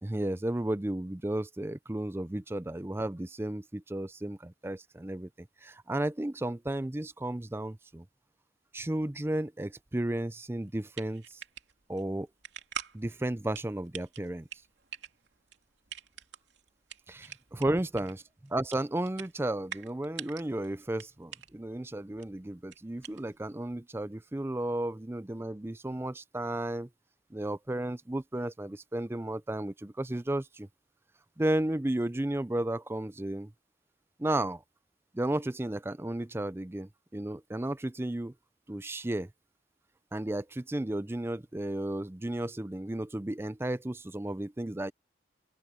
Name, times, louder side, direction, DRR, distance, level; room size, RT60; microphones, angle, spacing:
voice 1, 0.0-8.0 8.7-11.4 11.9-12.3 12.9-14.5 17.1-26.9 27.3-30.7 31.4-33.5 34.2-34.6 35.1-38.3 38.7-39.3 40.1-44.9, right 1 dB, 15° right, 0.5 m, -33 dB
sound 1, 10.6-23.6, right 8 dB, 75° right, 2.7 m, -46 dB
open air
head